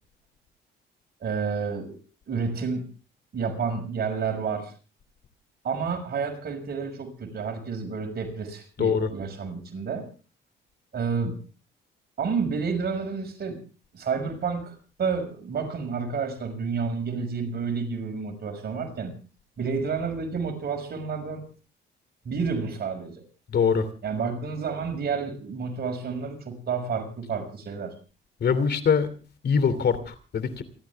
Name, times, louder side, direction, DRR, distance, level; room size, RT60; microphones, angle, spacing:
voice 1, 1.2-2.0 2.3-2.9 3.3-4.7 5.6-10.1 10.9-11.4 12.2-13.6 13.9-19.1 19.6-21.5 22.2-23.2 24.0-28.0, right 5 dB, 55° right, 6.1 m, -30 dB
voice 2, 8.8-9.1 23.5-23.9 28.4-29.1 29.4-30.6, left 6 dB, 55° left, 2.9 m, -23 dB
28.5 x 13.0 x 3.5 m
cardioid pair, 90°, 20 cm